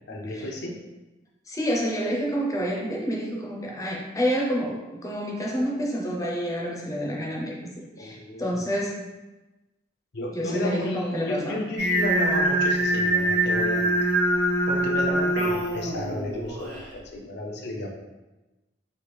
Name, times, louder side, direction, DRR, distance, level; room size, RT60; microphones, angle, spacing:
voice 1, 0.1-0.8 8.0-8.5 10.1-14.2 14.7-17.9, left 1 dB, 60° left, 0 dB, 0.5 m, -33 dB
voice 2, 1.5-9.1 10.3-11.6, equal, 20° left, -2 dB, 0.6 m, -28 dB
Singing, 11.8-16.9, right 1 dB, 90° right, 0.8 m, -24 dB
3.2 x 2.3 x 3.3 m, 1.1 s
head